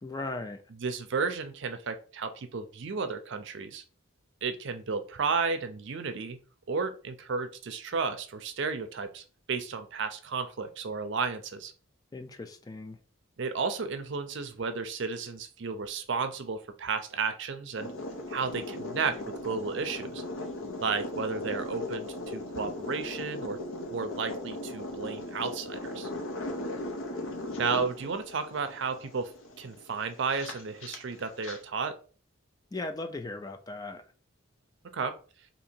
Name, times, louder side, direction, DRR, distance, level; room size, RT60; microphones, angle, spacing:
voice 1, 0.0-0.6 12.1-13.0 32.7-34.0, left 2 dB, 20° left, 0.3 m, -37 dB
voice 2, 0.8-3.8 4.4-6.4 6.7-11.7 13.4-17.9 18.3-20.2 20.8-23.6 23.9-26.1 27.6-29.3 29.6-31.9 34.9-35.1, right 5 dB, 60° right, 0.5 m, -33 dB
sound 1, 17.8-31.6, left 1 dB, 70° left, 0.7 m, -38 dB
2.8 x 2.8 x 4.3 m
head